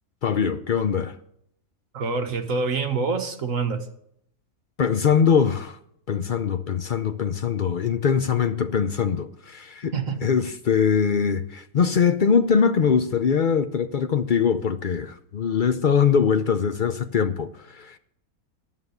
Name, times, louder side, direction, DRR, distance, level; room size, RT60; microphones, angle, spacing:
voice 1, 0.2-1.2 4.8-5.8 6.1-9.9 10.2-18.0, left 6 dB, 65° left, 0.5 m, -22 dB
voice 2, 1.9-3.8 9.9-10.2, right 4 dB, 60° right, 1.7 m, -26 dB
11.0 x 7.3 x 8.0 m
omnidirectional pair, 1.7 m